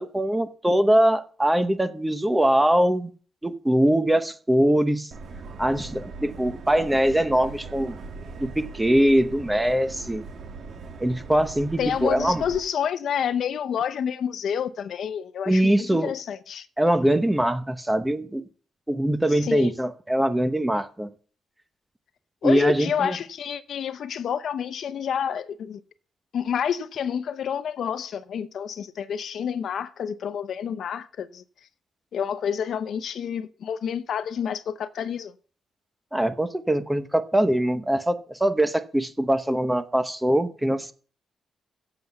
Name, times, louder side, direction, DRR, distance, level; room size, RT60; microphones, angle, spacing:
voice 1, 0.0-3.1 3.4-5.1 5.6-8.0 8.4-10.2 11.0-12.4 15.5-16.1 16.8-18.4 18.9-21.1 22.4-23.2 36.1-40.9, right 1 dB, 10° right, 0.9 m, -22 dB
Subway metro underground, 5.1-12.6, right 4 dB, 60° right, 1.6 m, -40 dB
voice 2, 11.8-16.7 19.4-19.7 22.4-25.8 26.3-31.4 32.1-35.3, left 8 dB, 65° left, 0.7 m, -29 dB
7.8 x 7.6 x 7.0 m
cardioid pair, 120°, 0 cm